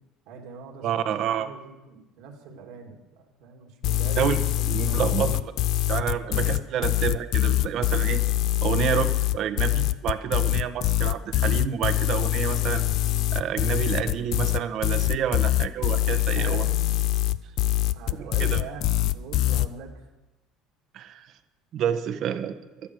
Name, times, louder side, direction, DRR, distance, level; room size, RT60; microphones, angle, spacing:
voice 1, 0.3-4.2 4.6-5.4 6.1-6.5 8.0-8.1 16.3-16.8 17.9-20.1, right 5 dB, 75° right, 1 dB, 2.9 m, -42 dB
voice 2, 0.8-1.5 4.2-4.4 4.7-5.3 5.9-8.2 8.6-12.9 13.3-16.6 18.2-18.6 20.9-21.3 21.7-22.6, right 9 dB, 55° right, 10 dB, 1.2 m, -28 dB
sound 1, 3.8-19.7, left 15 dB, 60° left, 0.5 m, -24 dB
15.5 x 11.5 x 4.9 m, 1.0 s
supercardioid pair, 95°, 0 cm